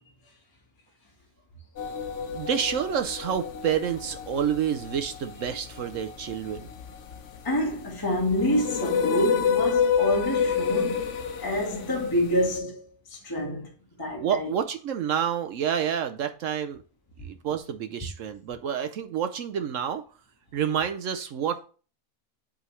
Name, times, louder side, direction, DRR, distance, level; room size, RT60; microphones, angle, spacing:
sound 1, 1.8-12.6, left 6 dB, 60° left, 1.0 m, -29 dB
voice 1, 2.3-6.7 14.2-16.8 17.2-20.0 20.5-21.6, right 8 dB, 65° right, 0.9 m, -28 dB
voice 2, 7.4-11.1 11.4-12.8 13.1-13.7 14.0-14.5, equal, 15° left, 1.3 m, -27 dB
11.0 x 3.8 x 3.2 m
omnidirectional pair, 1.6 m